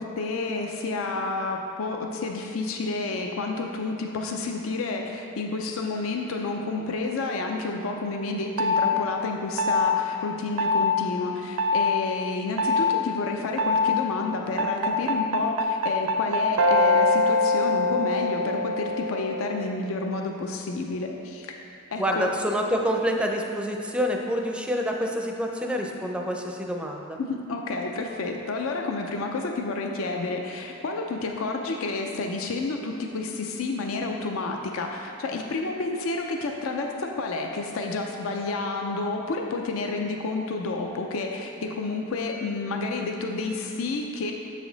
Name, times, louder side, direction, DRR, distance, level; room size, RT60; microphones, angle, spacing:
voice 1, 0.0-21.5 21.9-22.3 27.2-44.3, left 3 dB, 70° left, 2 dB, 0.5 m, -30 dB
sound 1, 8.6-8.9 9.6-10.0 10.6-11.0 11.6-11.9 12.6-12.9 13.6-14.0 14.6-19.7, left 2 dB, 80° right, 0.4 m, -23 dB
voice 2, 22.0-27.2, equal, 5° right, 1 dB, 0.5 m, -27 dB
7.2 x 5.0 x 3.9 m, 2.6 s
head